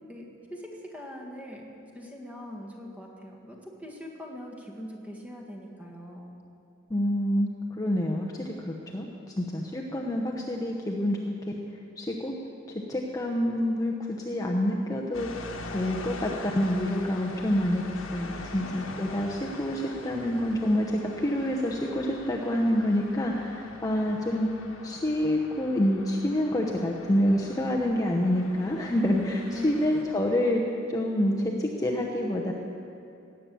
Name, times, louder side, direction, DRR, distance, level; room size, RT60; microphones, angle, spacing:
voice 1, 0.1-6.4 18.6-18.9 29.5-29.9, left 1 dB, 10° right, -1 dB, 1.7 m, -42 dB
voice 2, 6.9-11.3 12.0-12.3 12.9-15.4 15.7-24.5 24.8-30.6 30.9-32.5, left 1 dB, 20° left, -1 dB, 0.9 m, -27 dB
sound 1, 15.1-30.0, left 3 dB, 90° left, 1.4 m, -43 dB
17.5 x 8.9 x 6.9 m, 2.7 s
head